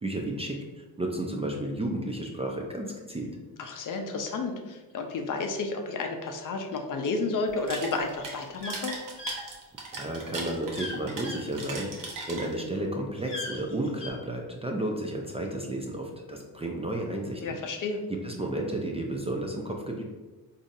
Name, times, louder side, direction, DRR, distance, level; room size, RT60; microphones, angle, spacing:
voice 1, 0.0-3.3 9.9-11.9 12.3-17.4 18.2-20.0, right 1 dB, 15° right, 0 dB, 0.4 m, -32 dB
voice 2, 3.6-8.9 17.4-18.0, left 3 dB, 50° left, 4 dB, 0.6 m, -31 dB
sound 1, 7.5-12.8, right 3 dB, 50° right, 0.8 m, -38 dB
sound 2, 8.6-8.8 9.2-9.4 10.7-11.0 11.2-11.4 13.2-14.1, left 2 dB, 30° left, 1.0 m, -37 dB
3.8 x 2.7 x 2.5 m, 1.2 s
cardioid pair, 75°, 41 cm